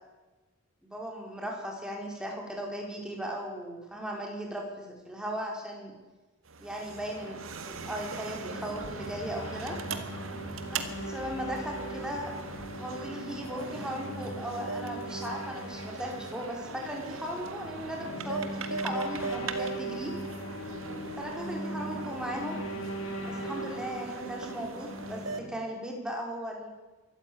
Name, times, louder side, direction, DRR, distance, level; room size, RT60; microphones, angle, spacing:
voice 1, 0.8-5.9 6.6-9.8 10.7-12.3 12.8-20.1 21.2-22.6 23.3-26.7, equal, 5° right, 0 dB, 4.9 m, -37 dB
sound 1, 6.5-25.4, right 4 dB, 75° right, 1.8 m, -40 dB
sound 2, 8.4-25.5, right 1 dB, 70° left, 3.2 m, -40 dB
23.5 x 14.0 x 8.9 m, 1.1 s
head